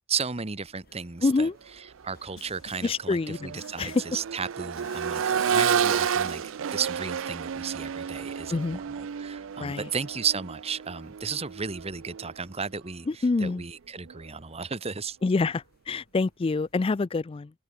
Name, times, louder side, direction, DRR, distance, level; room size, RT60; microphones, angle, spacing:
voice 1, 0.1-1.5 1.8-6.4 6.7-15.2, right 6 dB, 30° right, 1.1 m, -34 dB
sound 1, 0.6-16.8, left 1 dB, 50° left, 5.6 m, -64 dB
voice 2, 1.2-1.5 2.8-4.0 8.5-8.8 9.6-9.9 13.1-13.6 15.2-17.5, left 3 dB, 25° left, 0.3 m, -26 dB
Accelerating revving vroom, 1.9-2.0 2.5-12.4 14.1-14.2, right 7 dB, 65° right, 0.4 m, -31 dB
Snare drum, 2.4-3.1 3.6-4.3 4.8-6.7, left 5 dB, 75° left, 1.3 m, -50 dB
open air
head